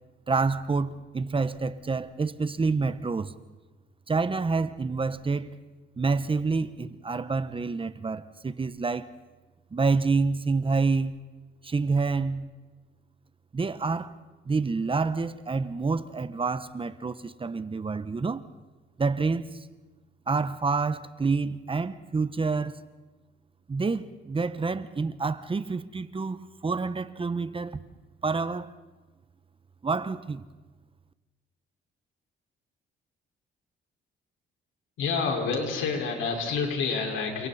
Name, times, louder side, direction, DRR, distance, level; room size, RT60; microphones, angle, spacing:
voice 1, 0.3-3.3 4.1-5.5 6.0-9.1 9.7-11.1 11.6-12.4 13.5-14.1 14.4-18.5 19.0-19.7 20.3-22.8 23.7-27.8 28.2-28.7 29.8-30.4, right 4 dB, 25° right, 1.1 m, -28 dB
voice 2, 35.0-37.5, left 4 dB, 85° left, 5.1 m, -28 dB
29.5 x 28.0 x 4.3 m
cardioid pair, 90°, 20 cm